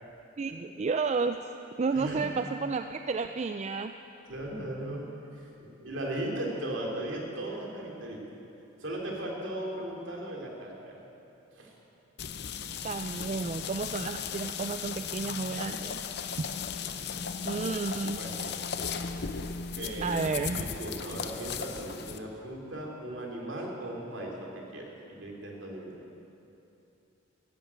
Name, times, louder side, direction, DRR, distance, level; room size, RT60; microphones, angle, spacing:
voice 1, 0.4-1.5 1.8-3.9 12.8-16.0 16.4-16.5 17.4-18.2 20.0-20.7, right 4 dB, 35° right, 8 dB, 0.3 m, -31 dB
voice 2, 1.9-2.2 4.3-8.2 8.8-11.0 11.5-11.7 16.9-17.0 17.4-17.7 18.2-18.6 19.8-20.3 20.6-26.0, right 1 dB, 65° right, -1 dB, 2.9 m, -37 dB
sound 1, 12.2-22.2, left 6 dB, 55° left, 0.7 m, -36 dB
14.0 x 11.0 x 8.6 m, 2.8 s
head